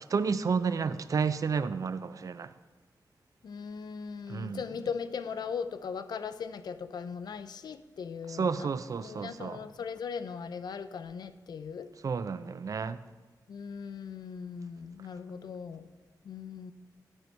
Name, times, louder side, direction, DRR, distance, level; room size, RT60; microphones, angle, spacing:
voice 1, 0.1-2.5 4.3-4.6 8.3-9.6 12.0-13.0, right 5 dB, 55° right, 13 dB, 0.4 m, -31 dB
voice 2, 3.4-8.7 9.0-11.9 13.5-15.9 16.2-16.7, left 6 dB, 75° left, 12 dB, 0.5 m, -39 dB
11.5 x 4.5 x 5.4 m, 1.3 s
wide cardioid pair, 90°, 7 cm